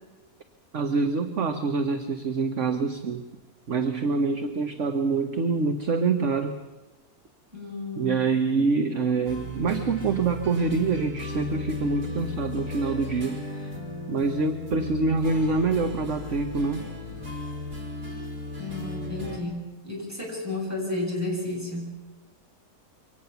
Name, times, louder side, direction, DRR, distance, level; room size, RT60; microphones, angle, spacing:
voice 1, 0.7-3.3 3.7-6.6 7.9-13.8 14.1-16.9, right 4 dB, 50° right, 7 dB, 1.5 m, -26 dB
voice 2, 7.5-8.2 18.6-21.9, left 2 dB, 10° right, -2 dB, 7.8 m, -32 dB
sound 1, 9.2-19.4, left 2 dB, 85° right, 5.9 m, -35 dB
24.0 x 18.5 x 7.1 m, 1.1 s
omnidirectional pair, 1.6 m